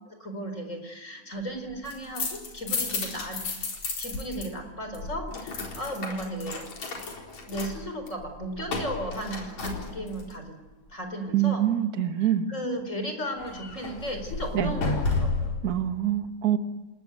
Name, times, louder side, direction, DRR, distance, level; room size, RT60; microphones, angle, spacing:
voice 1, 0.0-3.4 4.0-6.7 7.5-10.6 10.9-11.6 12.2-15.5, right 1 dB, 20° left, 6 dB, 4.7 m, -35 dB
sound 1, 1.7-4.5 4.7-10.3 13.4-15.6, left 3 dB, 60° left, 5.5 m, -32 dB
voice 2, 11.3-12.5 14.5-14.7 15.6-16.6, right 11 dB, 70° right, 7 dB, 0.8 m, -25 dB
28.5 x 19.0 x 9.4 m, 1.2 s
omnidirectional pair, 3.6 m